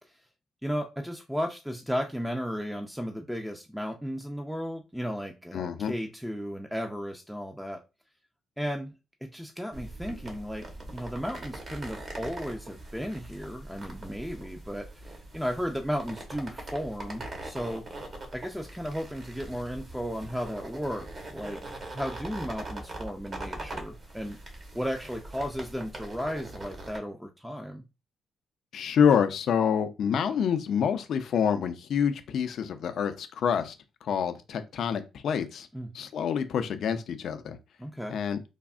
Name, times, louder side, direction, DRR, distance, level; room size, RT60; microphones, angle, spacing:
voice 1, 0.6-7.8 8.6-9.0 9.2-17.9 18.3-21.6 21.9-24.4 24.7-27.8 35.7-35.9 37.8-38.2, equal, 5° right, 0.4 m, -34 dB
voice 2, 5.5-5.9 28.7-33.7 34.0-35.7 35.9-37.6 38.1-38.4, left 7 dB, 65° left, 0.4 m, -27 dB
sound 1, 9.7-27.0, right 2 dB, 40° right, 0.9 m, -42 dB
3.4 x 2.0 x 2.4 m
cardioid pair, 90°, 0 cm